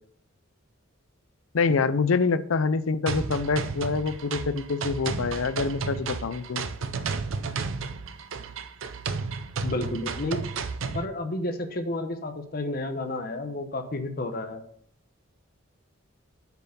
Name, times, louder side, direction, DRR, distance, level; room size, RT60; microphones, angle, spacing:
voice 1, 1.5-6.6, left 4 dB, 75° left, 14 dB, 0.5 m, -26 dB
sound 1, 3.1-11.1, right 4 dB, 70° right, 0.6 m, -32 dB
voice 2, 9.6-10.4 10.9-14.6, left 2 dB, 45° left, 7 dB, 0.9 m, -31 dB
8.0 x 4.6 x 5.5 m, 0.64 s
head